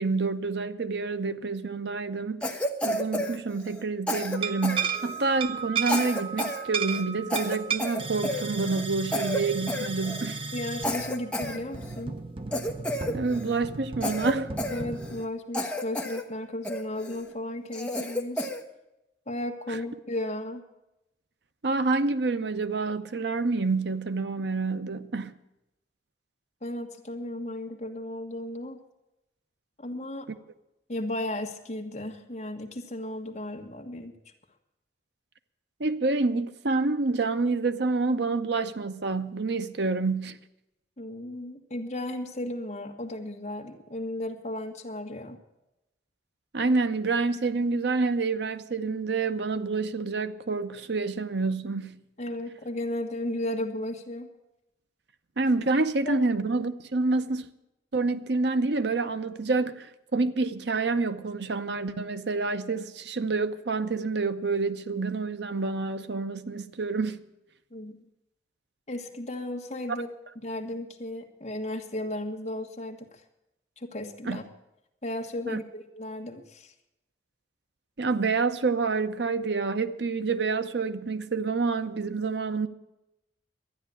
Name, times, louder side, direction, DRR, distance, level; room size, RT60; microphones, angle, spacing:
voice 1, 0.0-2.6 2.8-10.4 13.1-14.5 19.7-19.8 21.6-25.3 35.8-40.4 46.5-52.0 55.4-57.5 57.9-67.2 74.2-74.4 75.5-75.6 78.0-82.7, right 3 dB, 70° right, 0.8 m, -28 dB
Cough, 2.4-5.3 5.8-6.6 6.9-7.0 7.3-8.8 9.1-9.4 9.7-10.3 10.8-12.0 12.5-13.6 14.0-15.2 15.5-16.2 16.6-17.2 17.7-18.6, left 1 dB, 5° left, 1.0 m, -31 dB
sound 1, 4.3-15.2, right 6 dB, 30° right, 0.8 m, -35 dB
voice 2, 10.5-12.1 14.7-18.5 19.3-20.6 26.6-28.8 29.8-30.3 30.9-34.1 41.0-45.4 52.2-54.3 56.0-56.2 67.7-68.0 68.9-70.1 70.4-73.2 73.8-74.4 75.0-76.7, left 1 dB, 40° left, 1.6 m, -35 dB
12.5 x 10.0 x 8.4 m
head